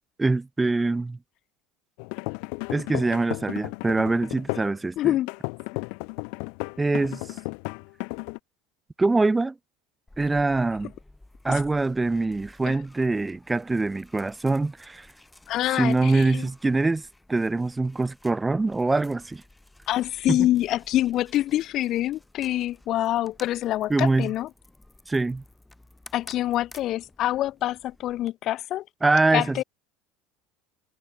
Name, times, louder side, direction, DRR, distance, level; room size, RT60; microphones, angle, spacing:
voice 1, 0.2-1.2 2.7-5.1 6.8-7.2 9.0-9.5 10.2-10.9 11.4-15.1 15.7-17.0 17.3-19.4 20.3-20.5 23.9-24.3 25.1-25.4 29.0-29.6, right 3 dB, 10° right, 2.1 m, -24 dB
sound 1, 2.0-4.8 5.3-8.4, left 40 dB or more, 70° left, 3.7 m, -34 dB
voice 2, 5.0-5.3 12.6-12.8 15.5-16.5 19.9-24.5 26.1-28.8 29.3-29.6, left 14 dB, 50° left, 0.6 m, -26 dB
sound 2, 10.1-28.3, left 1 dB, 5° left, 5.4 m, -53 dB
supercardioid pair, 120°, 0 cm